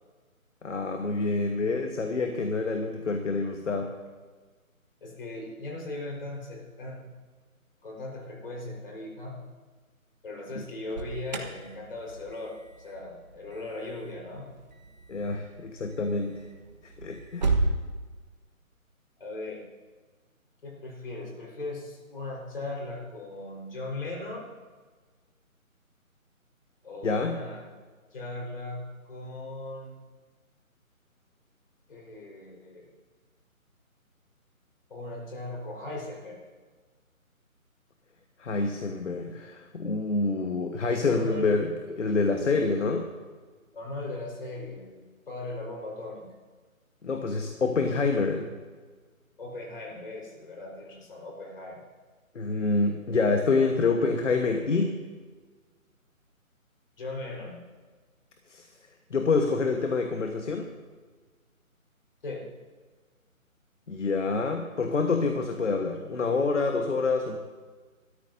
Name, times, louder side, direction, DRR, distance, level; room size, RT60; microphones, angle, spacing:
voice 1, 0.6-3.9 10.5-10.6 15.1-16.4 16.8-17.5 27.0-27.4 38.4-41.7 42.0-43.1 47.0-48.5 52.3-55.0 58.5-58.7 59.1-60.7 63.9-67.4, left 3 dB, 55° left, 5 dB, 1.4 m, -27 dB
voice 2, 5.0-7.1 7.8-9.4 10.2-14.5 19.2-19.6 20.6-24.5 26.8-27.6 28.1-30.0 31.9-32.9 34.9-36.4 41.1-41.6 41.9-42.0 43.7-46.3 49.4-51.8 57.0-57.6 62.2-62.5, left 2 dB, 40° left, -2 dB, 4.5 m, -38 dB
Alarm, 10.7-17.7, right 3 dB, 30° right, 1.2 m, -34 dB
25.5 x 13.5 x 2.7 m, 1.4 s
figure-of-eight pair, 165°, 42 cm